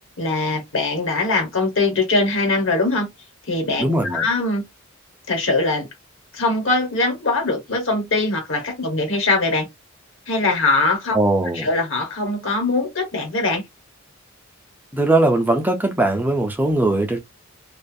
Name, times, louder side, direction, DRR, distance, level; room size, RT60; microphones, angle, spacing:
voice 1, 0.2-3.1 3.5-4.6 5.3-5.9 6.3-9.7 10.3-11.2 11.5-13.6, left 3 dB, 60° left, 1.2 m, -21 dB
voice 2, 3.8-4.3 11.1-11.7 14.9-17.2, right 2 dB, 10° right, 0.4 m, -19 dB
2.5 x 2.3 x 2.5 m
head